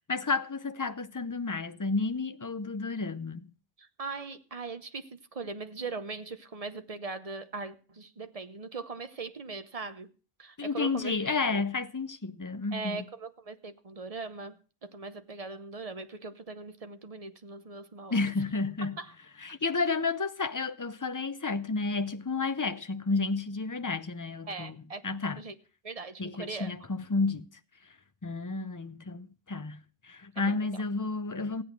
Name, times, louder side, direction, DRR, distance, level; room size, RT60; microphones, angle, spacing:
voice 1, 0.1-3.5 10.6-13.0 18.1-19.0 19.4-24.7 25.0-25.4 26.2-27.5 28.2-31.6, left 3 dB, 25° left, 0.4 m, -31 dB
voice 2, 3.8-10.1 10.4-11.6 12.7-18.3 19.0-19.1 24.4-25.0 25.4-25.5 25.8-26.7 30.4-30.8, right 4 dB, 35° right, 0.9 m, -40 dB
16.0 x 8.7 x 6.0 m
omnidirectional pair, 1.3 m